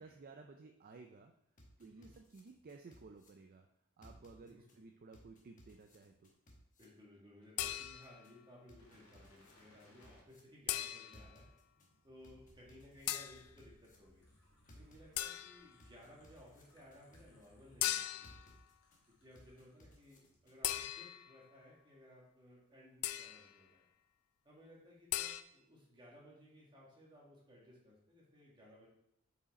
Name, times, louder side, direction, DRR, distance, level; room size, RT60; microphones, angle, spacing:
voice 1, 0.0-1.3 1.8-3.7 4.0-6.3, right 4 dB, 40° right, 4 dB, 0.4 m, -56 dB
sound 1, 1.6-3.3 4.0-4.8 5.1-6.8 7.6-8.3 8.7-10.4 11.1-11.9 12.2-14.0 14.7-15.4 15.8-17.5 18.2-19.0 19.3-20.8, equal, 35° left, 1.1 m, -61 dB
voice 2, 1.8-2.1 4.4-4.8 6.8-11.5 12.0-14.3 14.7-18.6 19.1-23.8 24.4-28.9, left 1 dB, 20° right, -5 dB, 1.8 m, -60 dB
sound 2, 7.6-8.3 10.7-11.3 13.1-13.5 15.2-15.7 17.8-18.5 20.6-21.4 23.0-23.5 25.1-25.4, left 13 dB, 70° left, 0.3 m, -38 dB
sound 3, 8.8-20.0 20.3-20.5, left 1 dB, 90° left, 1.5 m, -68 dB
5.5 x 4.8 x 4.1 m, 0.78 s
head